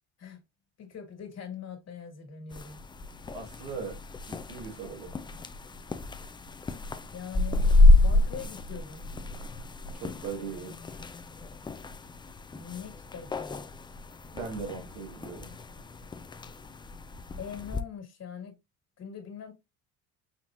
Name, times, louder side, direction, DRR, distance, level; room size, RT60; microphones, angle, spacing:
voice 1, 0.8-2.8 7.1-9.0 12.5-13.6 17.4-18.5 19.0-19.5, left 7 dB, 50° left, 1.9 m, -42 dB
sound 1, 2.5-17.8, left 2 dB, 15° left, 0.4 m, -28 dB
voice 2, 3.3-4.0 4.3-5.1 9.9-11.0 14.3-15.6, right 5 dB, 85° right, 1.8 m, -39 dB
5.7 x 2.9 x 2.5 m
supercardioid pair, 80°, 34 cm